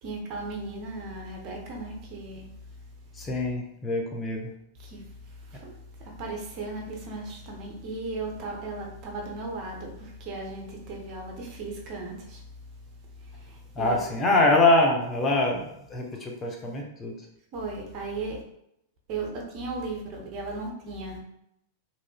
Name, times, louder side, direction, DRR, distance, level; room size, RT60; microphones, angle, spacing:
voice 1, 0.0-2.5 4.8-12.4 13.2-14.2 17.5-18.4 19.1-21.2, right 3 dB, 40° right, 0 dB, 0.7 m, -36 dB
voice 2, 3.2-4.5 13.8-15.6 15.9-17.1, left 2 dB, 20° left, 0 dB, 0.6 m, -24 dB
2.9 x 2.4 x 2.3 m, 0.78 s
figure-of-eight pair, 95°, 0 cm